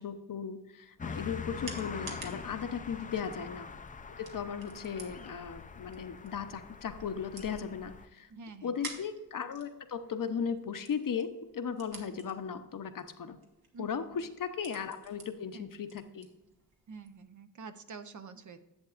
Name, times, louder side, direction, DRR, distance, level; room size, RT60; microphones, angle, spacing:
voice 1, 0.0-3.7 4.2-8.3 8.6-13.4 13.8-16.3, left 7 dB, 60° left, 9 dB, 0.8 m, -37 dB
sound 1, 0.8-17.2, right 4 dB, 75° right, 1.7 m, -52 dB
sound 2, 1.0-8.1, left 5 dB, 20° left, 0.4 m, -44 dB
voice 2, 8.3-8.8 13.7-13.9 15.5-15.7 16.9-18.6, right 5 dB, 50° right, 9 dB, 0.7 m, -47 dB
10.5 x 8.0 x 2.5 m, 1.0 s
wide cardioid pair, 95°, 37 cm